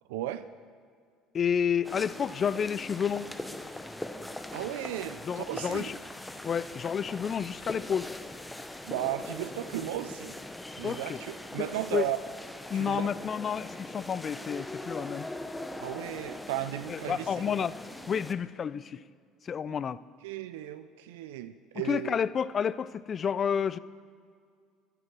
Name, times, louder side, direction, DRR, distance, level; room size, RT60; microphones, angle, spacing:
voice 1, 0.1-0.5 4.5-5.9 8.8-10.4 10.8-12.2 12.7-13.1 15.8-17.5 19.7-19.8 20.2-22.2, right 13 dB, 80° right, 11 dB, 0.4 m, -35 dB
voice 2, 1.3-3.3 5.3-6.0 6.4-8.1 10.8-11.2 11.6-12.1 12.7-15.3 16.9-17.7 18.1-19.0 19.4-20.0 21.9-23.8, left 7 dB, 40° left, 17 dB, 0.4 m, -30 dB
sound 1, 1.8-18.3, left 1 dB, 10° left, 0.8 m, -41 dB
11.5 x 10.0 x 6.1 m, 2.1 s
hypercardioid pair, 70°, 0 cm